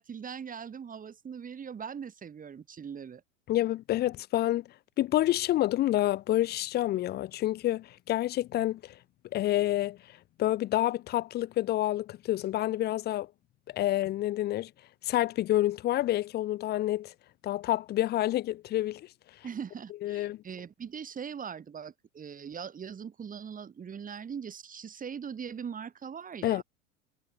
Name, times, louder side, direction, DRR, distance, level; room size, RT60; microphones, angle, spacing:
voice 1, 0.0-3.2 19.4-26.6, right 7 dB, 20° right, 3.4 m, -41 dB
voice 2, 3.5-4.6 5.0-8.9 9.3-10.0 10.4-13.3 13.7-14.7 15.0-17.1 17.4-19.1 20.0-20.4 26.4-26.6, left 14 dB, 25° left, 0.7 m, -28 dB
figure-of-eight pair, 85°, 38 cm